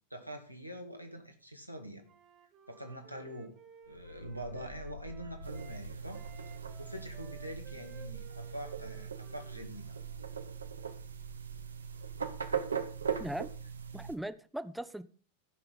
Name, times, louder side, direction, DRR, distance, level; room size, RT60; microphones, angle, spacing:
voice 1, 0.1-2.0 2.7-3.5 3.9-6.2 6.5-10.0, equal, 90° right, 2.0 m, -44 dB
Wind instrument woodwind instrument, 2.0-5.9 6.1-10.2, right 7 dB, 30° right, 1.8 m, -57 dB
sound 1, 3.8-9.9, left 2 dB, 75° left, 0.8 m, -51 dB
sound 2, 5.4-14.1, right 7 dB, 75° right, 1.0 m, -40 dB
voice 2, 13.2-13.5 13.9-15.0, right 1 dB, 5° right, 0.6 m, -39 dB
14.0 x 6.0 x 5.3 m
figure-of-eight pair, 90°, 0 cm